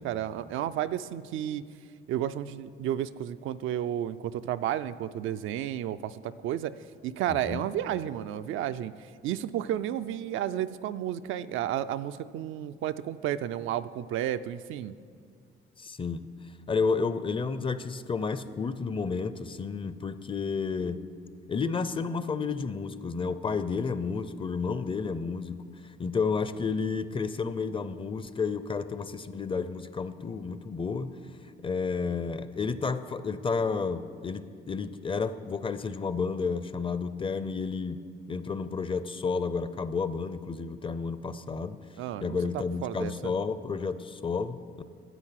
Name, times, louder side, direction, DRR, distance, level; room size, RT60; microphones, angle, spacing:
voice 1, 0.0-1.6 2.1-6.8 7.0-8.9 9.2-14.9 42.0-43.3, right 11 dB, 80° right, 12 dB, 0.4 m, -32 dB
voice 2, 7.3-7.6 15.8-16.2 16.7-21.0 21.5-25.6 26.0-31.1 31.6-38.0 38.3-41.8 42.2-44.8, left 5 dB, 25° left, 13 dB, 0.5 m, -31 dB
11.0 x 7.9 x 5.8 m, 2.1 s
cardioid pair, 90°, 20 cm